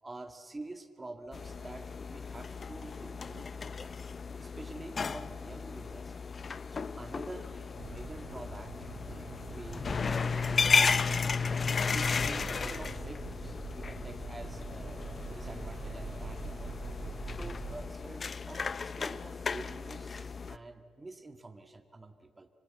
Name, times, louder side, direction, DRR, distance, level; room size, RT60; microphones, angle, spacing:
voice 1, 0.0-3.9 4.4-6.2 6.7-9.9 10.3-10.8 11.9-16.8 17.3-22.5, right 2 dB, 20° right, 7 dB, 2.1 m, -47 dB
sound 1, 1.3-20.6, left 5 dB, 45° left, 0.7 m, -34 dB
sound 2, 7.8-17.8, right 3 dB, 55° right, 3.8 m, -43 dB
25.5 x 25.0 x 7.8 m, 2.3 s
hypercardioid pair, 45°, 0 cm